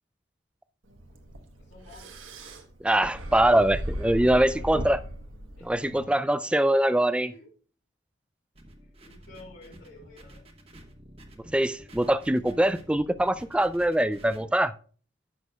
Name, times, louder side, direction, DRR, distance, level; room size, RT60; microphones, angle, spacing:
sound 1, 0.9-6.1, right 1 dB, 80° right, 1.3 m, -37 dB
voice 1, 1.6-2.1 4.0-4.8 5.5-6.8 7.2-7.5 8.8-10.4, left 2 dB, 60° left, 4.3 m, -52 dB
voice 2, 2.8-5.0 5.6-7.3 11.5-14.7, right 1 dB, 5° right, 0.3 m, -23 dB
sound 2, 8.5-14.5, right 1 dB, 30° right, 1.2 m, -50 dB
14.5 x 6.3 x 2.3 m
head